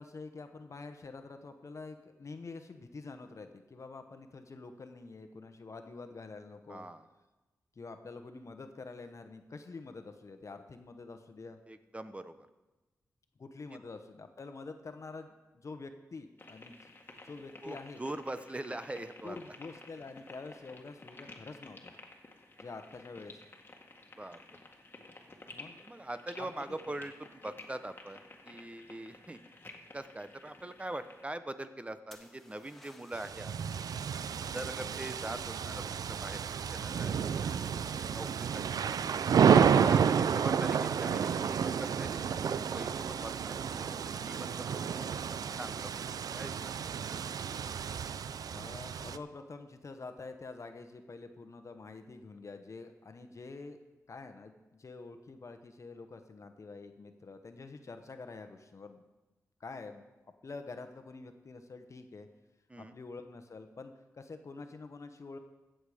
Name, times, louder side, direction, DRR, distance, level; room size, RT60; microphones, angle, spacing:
voice 1, 0.0-6.9 7.7-11.6 13.4-17.0 17.2-18.0 19.2-21.9 22.6-23.5 25.5-25.8 26.4-26.8 48.5-53.8 54.1-59.0 59.6-60.0 60.4-62.3 62.8-65.4, left 3 dB, 55° left, 7 dB, 1.0 m, -47 dB
voice 2, 6.7-7.0 11.7-12.3 17.6-19.4 24.2-24.4 25.8-29.4 29.9-33.5 34.5-35.8 36.1-36.4 36.7-37.1 37.4-39.0 39.8-44.9 45.6-46.1 46.3-46.9 62.7-62.9, right 1 dB, 20° right, 11 dB, 0.8 m, -43 dB
sound 1, 16.4-31.3, left 2 dB, 35° left, 1.8 m, -53 dB
sound 2, 32.1-33.6 37.2-37.7, left 1 dB, 5° left, 1.7 m, -57 dB
sound 3, 33.1-49.2, right 7 dB, 85° right, 0.4 m, -30 dB
15.0 x 7.7 x 5.0 m, 1.1 s
cardioid pair, 65°, 6 cm